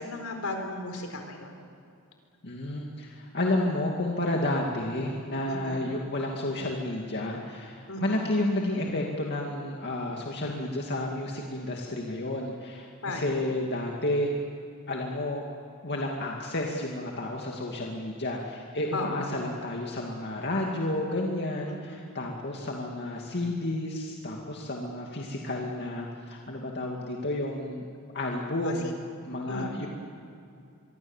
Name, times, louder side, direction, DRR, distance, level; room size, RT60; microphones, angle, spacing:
voice 1, 0.0-1.6 5.5-5.9 7.9-8.3 13.0-13.4 18.9-19.3 21.7-22.2 28.6-28.9 29.5-29.9, left 2 dB, 75° left, 4 dB, 4.4 m, -36 dB
voice 2, 2.4-14.3 14.9-15.4 15.8-27.9 28.1-28.9 29.3-29.9, left 1 dB, 50° left, -1 dB, 2.4 m, -31 dB
25.5 x 23.0 x 7.4 m, 2.5 s
head